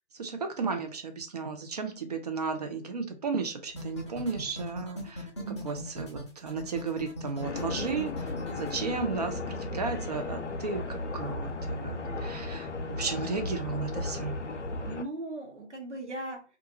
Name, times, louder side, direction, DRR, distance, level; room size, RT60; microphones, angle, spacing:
voice 1, 0.1-5.3 5.6-14.4, right 4 dB, 35° right, 6 dB, 0.4 m, -34 dB
sound 1, 3.7-8.7, equal, 25° left, 0.4 m, -39 dB
voice 2, 5.4-5.7 14.7-16.4, right 2 dB, 85° right, 2 dB, 1.0 m, -38 dB
sound 2, 7.4-15.0, left 2 dB, 90° left, 0.5 m, -35 dB
2.4 x 2.2 x 2.7 m, 0.35 s
figure-of-eight pair, 135°, 34 cm